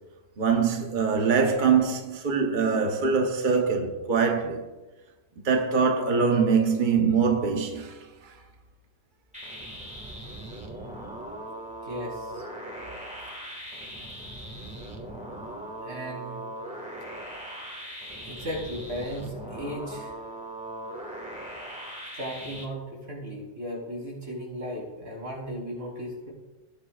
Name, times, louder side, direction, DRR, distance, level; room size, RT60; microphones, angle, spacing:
voice 1, 0.4-4.6 5.4-8.3, right 5 dB, 40° right, 1.1 m, -23 dB
sound 1, 9.3-22.6, right 1 dB, 5° right, 1.7 m, -39 dB
voice 2, 11.8-12.5 15.8-16.4 18.2-20.1 22.1-26.3, equal, 80° right, 4.6 m, -36 dB
18.0 x 9.9 x 2.4 m
omnidirectional pair, 1.4 m